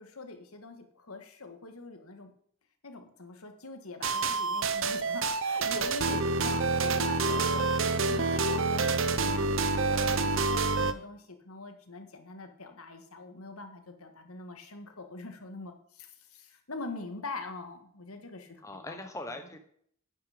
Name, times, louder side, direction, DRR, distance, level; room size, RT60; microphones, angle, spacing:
voice 1, 0.0-2.3 2.8-7.6 8.0-19.0 19.4-19.5, left 3 dB, 85° left, 6 dB, 1.8 m, -43 dB
sound 1, 4.0-10.9, right 3 dB, 60° right, 0.9 m, -28 dB
voice 2, 7.2-7.6 18.6-19.6, left 2 dB, 15° left, 5 dB, 1.2 m, -41 dB
10.0 x 9.5 x 5.1 m, 0.63 s
head